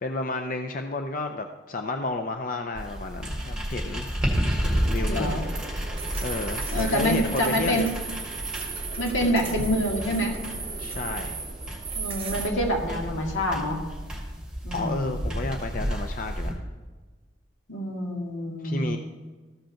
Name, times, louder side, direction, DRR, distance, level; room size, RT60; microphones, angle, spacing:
voice 1, 0.0-4.1 4.6-5.4 6.2-7.9 10.8-11.4 14.7-16.6 18.6-19.0, left 3 dB, 45° left, 5 dB, 0.5 m, -31 dB
sound 1, 2.7-16.5, equal, 5° right, 2.0 m, -31 dB
sound 2, 4.6-12.5, right 5 dB, 30° right, 1.1 m, -36 dB
voice 2, 5.1-5.4 6.7-7.9 9.0-10.4 11.9-13.8 14.6-15.2 17.7-19.0, equal, 80° left, 1 dB, 2.1 m, -26 dB
14.0 x 5.2 x 5.8 m, 1.3 s
head